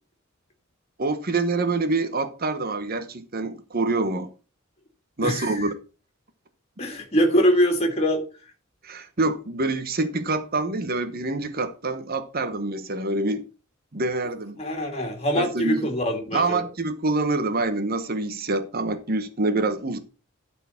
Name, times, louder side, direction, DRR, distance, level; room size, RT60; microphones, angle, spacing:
voice 1, 1.0-4.3 5.2-5.7 8.8-13.4 13.9-14.6 15.4-15.8 16.3-20.0, right 3 dB, 45° right, 1.0 m, -26 dB
voice 2, 5.2-5.7 6.8-8.2 14.6-16.6, equal, 30° left, 2.5 m, -23 dB
12.0 x 4.5 x 5.8 m
head